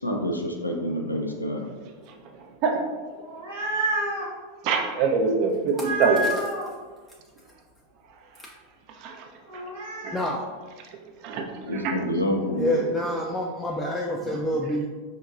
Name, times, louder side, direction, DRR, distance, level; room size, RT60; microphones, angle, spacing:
voice 1, 0.0-1.7 11.6-12.8, equal, 90° left, 1 dB, 0.5 m, -27 dB
sound 1, 3.1-4.3 5.7-6.7 9.5-10.2, right 1 dB, 75° right, 1.0 m, -29 dB
voice 2, 4.6-6.2 9.0-9.2 11.2-12.0, right 5 dB, 50° right, 3 dB, 0.5 m, -24 dB
voice 3, 12.5-14.9, equal, 10° left, -1 dB, 0.3 m, -27 dB
4.3 x 2.9 x 2.4 m, 1.4 s
figure-of-eight pair, 90°, 0 cm